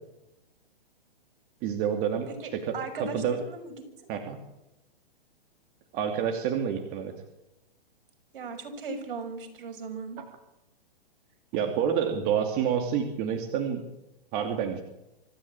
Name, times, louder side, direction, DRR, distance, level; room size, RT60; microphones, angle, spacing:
voice 1, 1.6-2.3 2.5-3.4 4.1-4.4 5.9-7.1 11.5-13.8 14.3-14.8, right 8 dB, 30° right, 4 dB, 2.7 m, -28 dB
voice 2, 2.4-3.8 4.0-4.1 8.3-10.2, right 4 dB, 65° right, 6 dB, 6.1 m, -38 dB
25.0 x 14.5 x 8.9 m, 0.91 s
hypercardioid pair, 130°, 29 cm